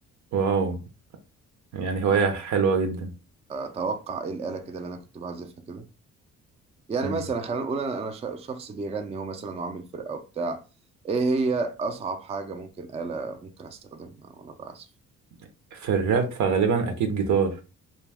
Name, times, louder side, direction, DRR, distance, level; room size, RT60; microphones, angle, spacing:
voice 1, 0.3-0.8 1.7-3.1 7.0-7.2 15.7-17.5, right 5 dB, 70° right, 0.7 m, -24 dB
voice 2, 3.5-5.9 6.9-10.6 11.0-14.9, right 4 dB, 20° right, 0.4 m, -31 dB
2.3 x 2.2 x 3.4 m
cardioid pair, 90°, 30 cm